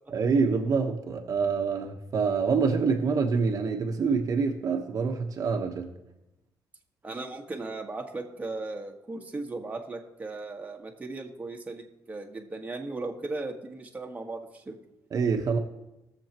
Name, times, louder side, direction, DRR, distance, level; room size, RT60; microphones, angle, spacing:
voice 1, 0.1-5.9 15.1-15.6, right 5 dB, 55° right, 3 dB, 1.1 m, -26 dB
voice 2, 7.0-14.8, right 3 dB, 20° right, 1 dB, 1.5 m, -37 dB
21.5 x 7.2 x 3.0 m, 0.94 s
cardioid pair, 110°, 7 cm